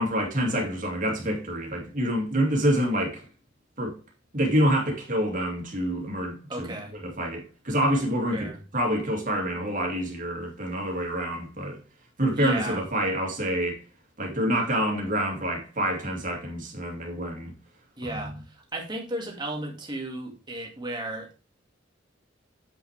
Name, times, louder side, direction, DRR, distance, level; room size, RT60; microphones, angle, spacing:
voice 1, 0.0-3.3 3.8-3.9 4.3-11.8 12.2-13.8 14.2-17.5 18.0-18.2, equal, 45° right, 2.4 m, -27 dB
voice 2, 6.5-7.0 8.3-8.6 12.3-12.8 18.0-21.3, right 1 dB, 25° right, 1.9 m, -34 dB
7.8 x 5.9 x 3.2 m
head